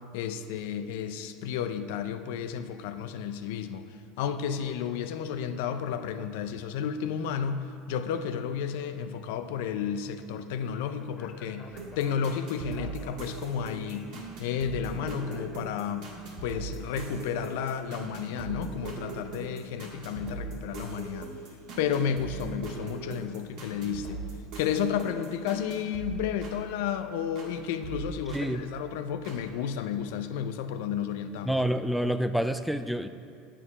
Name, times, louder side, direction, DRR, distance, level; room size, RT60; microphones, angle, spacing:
voice 1, 0.1-11.7 12.0-14.1 14.4-16.1 16.4-21.3 21.8-24.2 24.6-31.5, left 8 dB, 75° left, 10 dB, 0.4 m, -32 dB
Speech, 11.0-16.0, left 5 dB, 45° left, 0.7 m, -50 dB
sound 1, 11.7-27.5 27.8-29.4, right 4 dB, 60° right, 1.7 m, -40 dB
voice 2, 28.3-28.6 31.5-33.1, equal, ahead, 10 dB, 0.3 m, -28 dB
9.0 x 4.5 x 5.5 m, 2.5 s
supercardioid pair, 95°, 0 cm